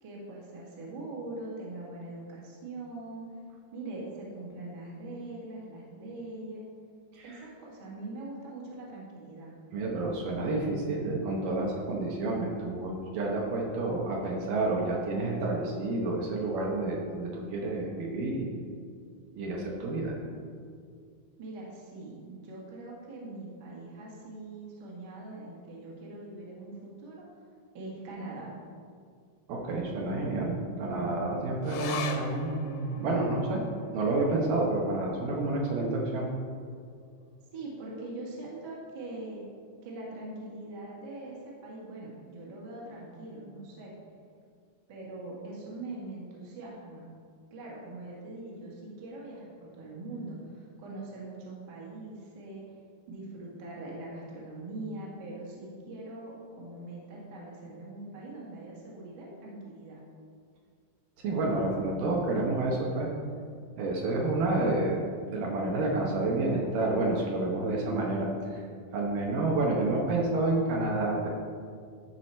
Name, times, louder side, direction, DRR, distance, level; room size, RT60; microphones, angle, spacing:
voice 1, 0.0-3.3 3.7-6.6 7.2-9.5 21.4-27.2 27.7-28.5 37.5-39.4 39.8-43.9 44.9-47.1 47.5-52.6 53.1-60.0, right 2 dB, 45° right, -4 dB, 1.4 m, -42 dB
voice 2, 7.1-7.4 9.7-18.5 19.3-20.1 29.5-33.6 33.9-36.3 61.2-63.1 63.8-65.0 65.3-68.6 68.9-71.3, right 2 dB, 70° right, -2 dB, 2.4 m, -29 dB
sound 1, 31.6-38.4 38.7-38.8 39.2-39.8 40.4-40.5, left 6 dB, 80° left, 2.3 m, -43 dB
13.0 x 4.9 x 4.3 m, 2.1 s
omnidirectional pair, 4.4 m